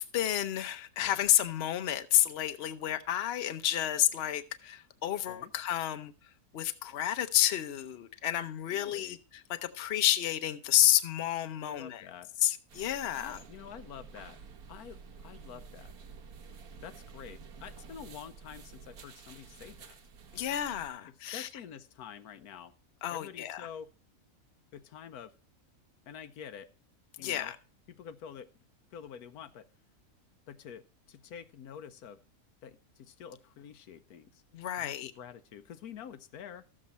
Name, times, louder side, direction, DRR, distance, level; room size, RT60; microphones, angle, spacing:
voice 1, 0.0-6.1 6.5-12.1 12.4-13.4 20.3-21.5 23.0-23.7 27.2-27.6 34.5-35.1, left 13 dB, 50° left, 0.9 m, -30 dB
voice 2, 8.7-9.2 11.6-12.3 13.2-14.4 14.7-15.9 16.8-20.0 21.3-22.7 23.1-23.9 24.7-25.4 26.1-26.7 27.2-27.5 28.0-28.5 28.9-29.7 30.5-32.2 32.6-34.4 34.8-36.7, left 8 dB, 85° left, 1.3 m, -47 dB
sound 1, 12.7-20.9, right 5 dB, 85° right, 1.6 m, -50 dB
13.5 x 7.6 x 4.2 m
omnidirectional pair, 1.6 m